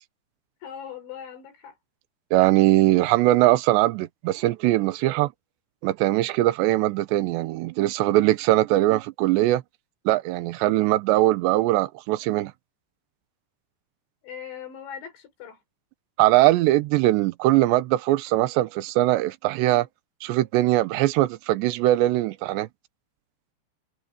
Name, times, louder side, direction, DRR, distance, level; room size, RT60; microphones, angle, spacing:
voice 1, 0.6-1.8 14.2-15.6, left 8 dB, 85° left, 6.2 m, -39 dB
voice 2, 2.3-5.3 5.8-9.6 10.1-12.5 16.2-19.9 20.2-22.7, right 16 dB, 85° right, 3.1 m, -21 dB
omnidirectional pair, 5.1 m